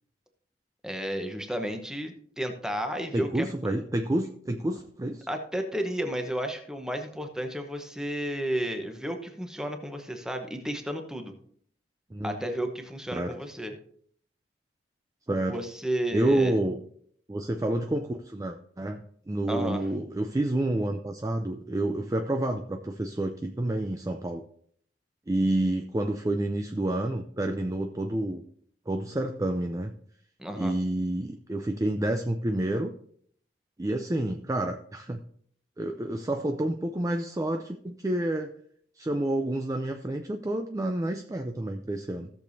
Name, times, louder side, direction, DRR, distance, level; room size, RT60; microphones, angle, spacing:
voice 1, 0.8-3.7 5.3-11.3 12.2-13.7 15.5-16.6 19.5-19.8 30.4-30.7, equal, 5° right, 5 dB, 0.9 m, -32 dB
voice 2, 3.1-5.3 12.1-12.4 13.1-13.3 15.3-15.6 16.1-16.8 17.3-24.4 25.3-28.4 28.9-29.9 30.5-32.9 33.8-35.2 35.8-38.5 39.0-42.3, right 1 dB, 20° right, 5 dB, 0.4 m, -29 dB
16.5 x 6.7 x 2.7 m, 0.63 s
head